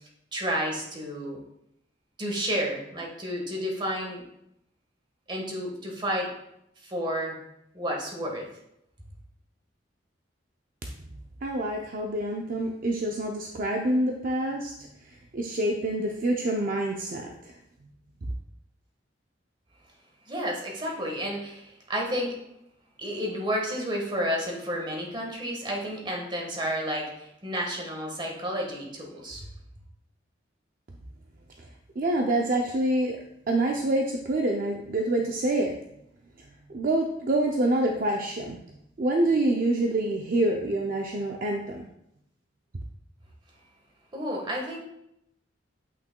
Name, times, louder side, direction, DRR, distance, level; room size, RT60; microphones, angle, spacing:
voice 1, 0.3-1.4 2.2-4.2 5.3-6.3 6.8-7.4 7.7-8.4 20.3-22.4 23.0-29.5 44.1-44.8, equal, 25° right, -1 dB, 1.4 m, -31 dB
voice 2, 11.4-14.7 15.0-17.6 31.6-31.7 32.0-33.2 33.5-35.8 36.7-38.6 39.0-41.9, right 1 dB, 45° right, 2 dB, 0.5 m, -26 dB
8.3 x 5.7 x 2.2 m, 0.80 s
head